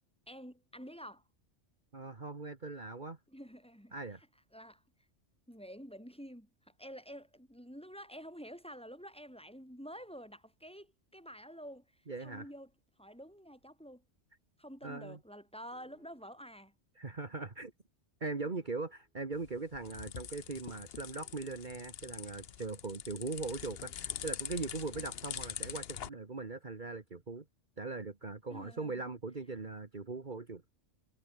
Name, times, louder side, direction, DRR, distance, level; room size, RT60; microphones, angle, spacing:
voice 1, 0.3-1.2 3.3-3.9 4.5-4.8 5.5-12.7 13.0-14.0 14.6-16.7 28.5-29.1, equal, 5° left, 4.0 m, -49 dB
voice 2, 1.9-3.2 3.9-4.2 12.1-12.5 14.8-15.2 17.0-17.7 18.2-27.5 27.8-30.6, right 3 dB, 40° right, 1.9 m, -40 dB
sound 1, 15.7-16.5 18.4-19.2 21.0-21.9 23.7-26.4, left 1 dB, 40° left, 6.3 m, -67 dB
sound 2, 19.3-26.1, left 9 dB, 60° left, 0.9 m, -44 dB
omnidirectional pair, 1.2 m